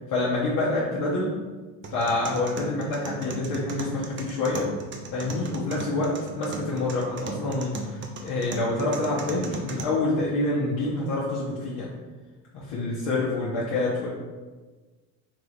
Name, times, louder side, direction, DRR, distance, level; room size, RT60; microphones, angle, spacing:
voice 1, 0.1-1.3 1.9-4.7 5.1-11.9 12.5-14.1, left 2 dB, 60° left, -6 dB, 0.9 m, -27 dB
sound 1, 1.8-9.8, right 3 dB, 30° right, 0.4 m, -38 dB
3.8 x 2.4 x 3.3 m, 1.3 s
supercardioid pair, 90°, 42 cm